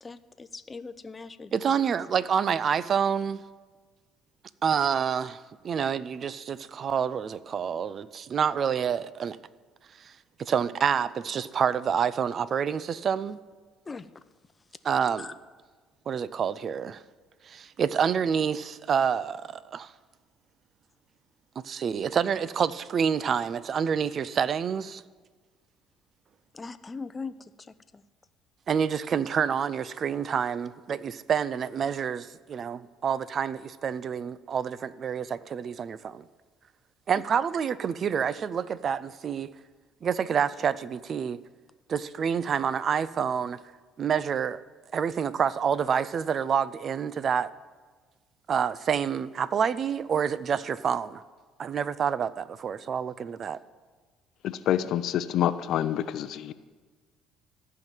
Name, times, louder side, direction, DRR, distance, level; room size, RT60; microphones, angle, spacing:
voice 1, 0.0-1.8 13.9-14.1 15.2-15.3 26.5-27.3 27.7-28.0, left 4 dB, 25° left, 0.6 m, -40 dB
voice 2, 1.5-3.4 4.6-9.4 10.0-10.1 10.4-13.4 14.8-15.3 16.1-17.0 17.5-19.9 21.6-25.0 28.7-36.2 37.1-39.5 40.0-41.4 41.9-43.6 44.0-44.6 44.9-47.5 48.5-51.2 51.6-53.6, right 7 dB, 45° right, 0.5 m, -28 dB
voice 3, 54.4-56.5, left 11 dB, 65° left, 0.6 m, -27 dB
14.0 x 5.8 x 9.1 m
cardioid pair, 95°, 0 cm